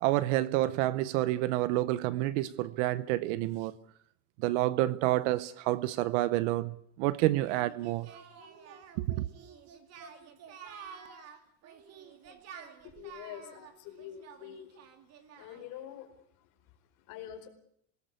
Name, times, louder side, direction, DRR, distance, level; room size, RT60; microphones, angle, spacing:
voice 1, 0.0-3.7 4.4-8.1 9.0-9.2, right 16 dB, 50° right, 0.9 m, -29 dB
Singing, 7.5-15.8, right 7 dB, 30° right, 2.5 m, -50 dB
voice 2, 12.8-14.8 15.4-17.5, left 10 dB, 40° left, 4.6 m, -46 dB
26.0 x 19.0 x 8.3 m
supercardioid pair, 165°, 47 cm